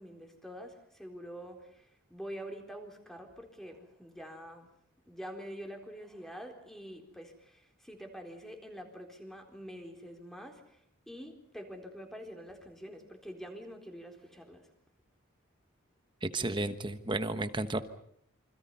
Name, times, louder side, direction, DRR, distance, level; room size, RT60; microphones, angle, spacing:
voice 1, 0.0-4.7 5.1-14.7, equal, ahead, 4 dB, 4.0 m, -46 dB
voice 2, 16.2-17.8, right 2 dB, 20° right, 10 dB, 1.2 m, -32 dB
28.0 x 26.0 x 5.6 m, 0.69 s
head